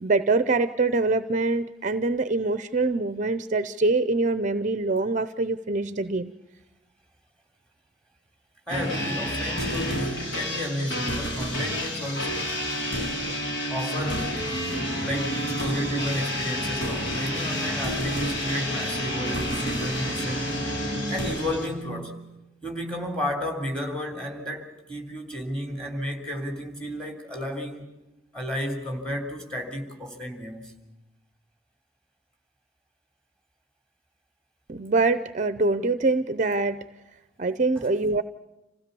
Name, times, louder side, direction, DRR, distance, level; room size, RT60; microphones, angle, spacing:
voice 1, 0.0-6.3 34.7-36.8 37.4-38.2, right 3 dB, 40° right, 0.6 m, -24 dB
sound 1, 8.7-21.7, equal, 65° left, 4.3 m, -29 dB
voice 2, 8.7-12.6 13.7-14.3 15.0-20.5 21.1-22.3 22.6-27.8 28.3-30.8 37.8-37.9, equal, 5° left, 3.2 m, -32 dB
27.0 x 16.0 x 6.9 m
head